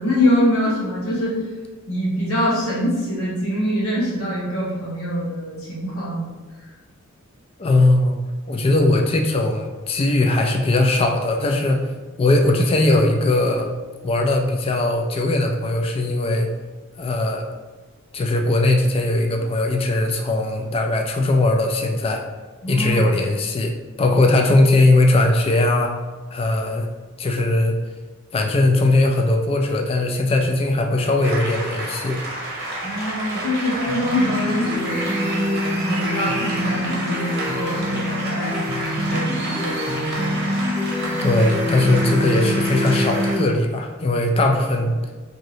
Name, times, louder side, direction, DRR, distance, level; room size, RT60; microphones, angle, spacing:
voice 1, 0.0-1.4 1.9-6.3 22.6-23.1 32.8-38.6 39.0-40.1 44.8-44.9, equal, 80° left, -7 dB, 1.1 m, -24 dB
voice 2, 7.6-8.2 8.5-11.9 12.2-13.7 14.0-16.5 17.0-17.5 18.1-22.2 22.7-23.7 24.0-25.9 26.3-26.9 27.2-27.8 28.3-32.2 41.2-45.1, left 2 dB, 25° left, 3 dB, 0.3 m, -19 dB
sound 1, 31.2-43.3, right 1 dB, 50° right, 0.8 m, -30 dB
sound 2, 33.9-43.5, left 1 dB, 5° left, 0.8 m, -25 dB
3.0 x 2.6 x 2.7 m, 1.3 s
head